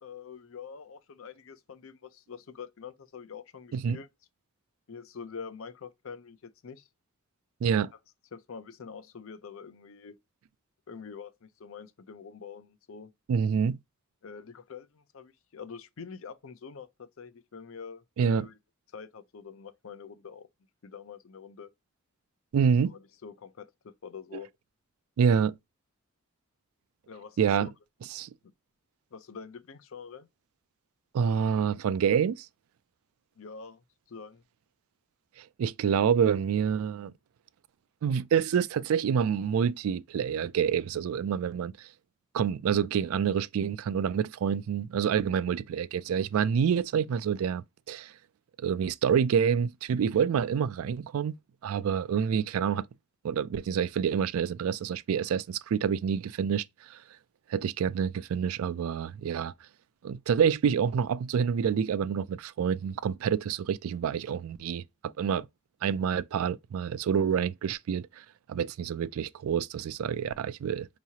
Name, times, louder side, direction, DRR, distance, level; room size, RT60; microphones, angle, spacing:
voice 1, 0.0-4.1 4.9-6.9 8.3-10.2 10.9-13.1 14.2-18.6 18.9-20.5 20.8-21.7 22.9-24.5 27.1-27.7 29.1-30.3 33.4-34.4, left 6 dB, 65° left, 0.5 m, -45 dB
voice 2, 7.6-7.9 13.3-13.8 18.2-18.5 22.5-22.9 25.2-25.5 27.4-27.7 28.1-28.3 31.1-32.5 35.4-37.1 38.0-41.9 42.3-48.1 48.6-51.4 51.6-52.9 53.2-57.0 57.5-59.5 60.0-65.5 65.8-70.9, right 7 dB, 75° right, 0.3 m, -27 dB
4.7 x 3.0 x 2.7 m
head